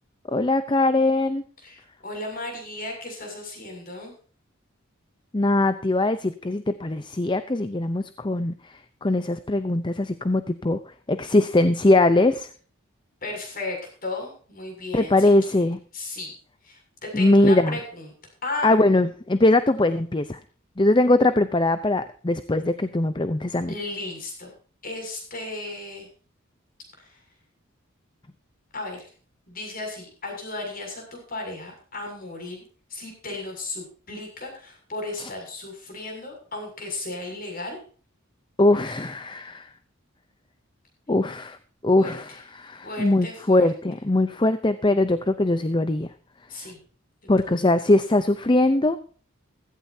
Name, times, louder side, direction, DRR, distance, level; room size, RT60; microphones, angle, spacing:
voice 1, 0.3-1.4 5.3-12.5 14.9-15.8 17.1-17.8 18.6-20.4 20.8-23.7 35.2-35.3 38.6-39.7 41.1-41.6 41.8-46.1 47.3-49.0, left 2 dB, 25° left, 11 dB, 0.6 m, -21 dB
voice 2, 1.6-4.1 13.2-15.3 15.9-16.3 16.6-18.1 18.4-18.7 23.7-24.5 24.8-26.1 27.0-27.2 28.7-29.1 29.5-32.6 32.9-37.8 42.0-42.1 42.8-43.7 46.5-46.8, left 2 dB, 45° left, 2 dB, 6.8 m, -35 dB
16.0 x 15.0 x 2.8 m, 0.42 s
head